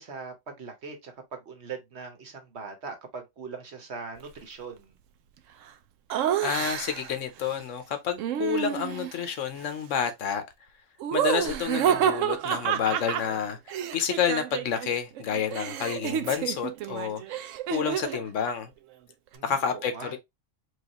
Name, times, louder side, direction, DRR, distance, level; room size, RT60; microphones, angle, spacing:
voice 1, 0.0-4.9 19.3-20.2, right 5 dB, 60° right, 1.2 m, -41 dB
voice 2, 6.1-10.4 11.1-17.4 17.7-18.7 19.4-20.2, left 7 dB, 70° left, 1.1 m, -29 dB
Laughter, 6.1-7.1 8.2-9.2 11.0-14.9 15.2-18.3, right 10 dB, 75° right, 0.9 m, -29 dB
4.7 x 2.4 x 2.9 m
omnidirectional pair, 1.4 m